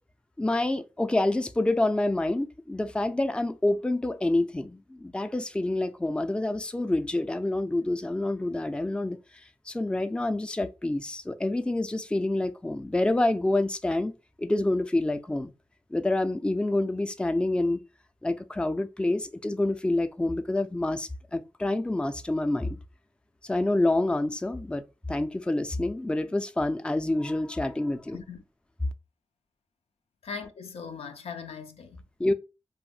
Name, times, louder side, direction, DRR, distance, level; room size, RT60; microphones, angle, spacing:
voice 1, 0.4-9.2 9.7-14.1 14.4-15.5 15.9-17.8 18.2-22.8 23.4-24.8 25.1-28.2 32.2-32.3, left 2 dB, 10° left, 0.4 m, -27 dB
voice 2, 28.1-28.4 30.2-32.0, left 5 dB, 85° left, 0.4 m, -39 dB
2.6 x 2.0 x 3.8 m
cardioid pair, 45°, 10 cm